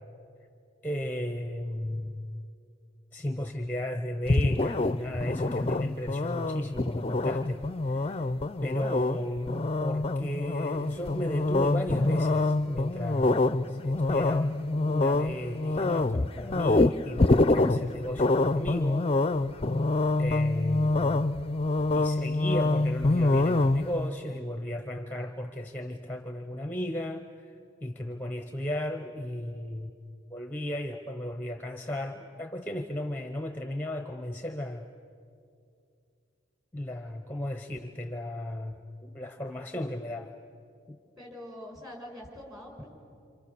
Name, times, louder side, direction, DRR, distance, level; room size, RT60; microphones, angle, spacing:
voice 1, 0.8-2.3 3.1-8.3 8.6-19.1 20.2-21.0 21.9-27.5 27.8-29.9 30.3-34.9 36.7-40.3 40.9-41.0, left 1 dB, 10° left, 6 dB, 0.9 m, -35 dB
sound 1, 4.3-24.1, left 2 dB, 30° left, 0.5 m, -26 dB
voice 2, 41.2-42.9, left 1 dB, 20° right, 0 dB, 5.7 m, -44 dB
28.5 x 27.0 x 6.9 m, 2.5 s
head